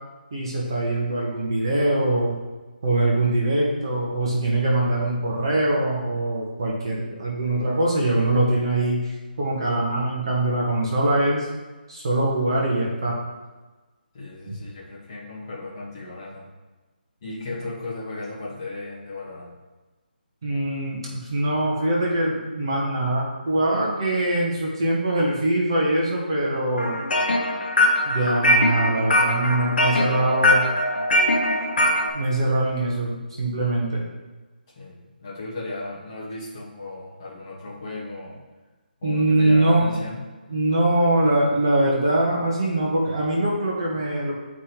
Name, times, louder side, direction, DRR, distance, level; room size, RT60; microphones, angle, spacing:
voice 1, 0.3-2.4 2.8-9.1 9.4-11.5 11.9-13.1 14.5-14.6 20.4-27.0 28.0-30.7 32.1-34.1 39.0-39.9 40.5-44.3, right 1 dB, 25° right, -3 dB, 1.0 m, -23 dB
voice 2, 14.1-16.5 17.2-19.5 34.7-38.4 39.0-40.2, left 2 dB, 20° left, -7 dB, 1.2 m, -35 dB
sound 1, 26.8-32.1, left 1 dB, 65° left, 1.1 m, -21 dB
7.6 x 5.0 x 2.9 m, 1.2 s
hypercardioid pair, 180°, 6 cm